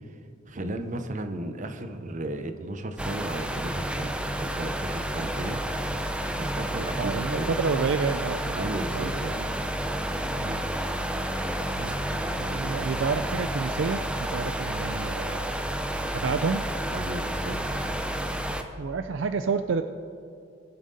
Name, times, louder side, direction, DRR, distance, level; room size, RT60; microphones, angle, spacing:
voice 1, 0.4-5.6 6.4-7.6 8.6-9.4 16.9-17.8, right 1 dB, 40° right, 8 dB, 0.8 m, -34 dB
sound 1, 3.0-18.6, right 1 dB, 5° right, 0.6 m, -30 dB
voice 2, 7.0-9.1 9.4-9.5 10.4-10.6 11.8-12.1 12.4-15.5 16.1-16.6 18.8-19.8, right 5 dB, 65° right, 9 dB, 0.4 m, -29 dB
21.0 x 7.5 x 4.1 m, 2.5 s
head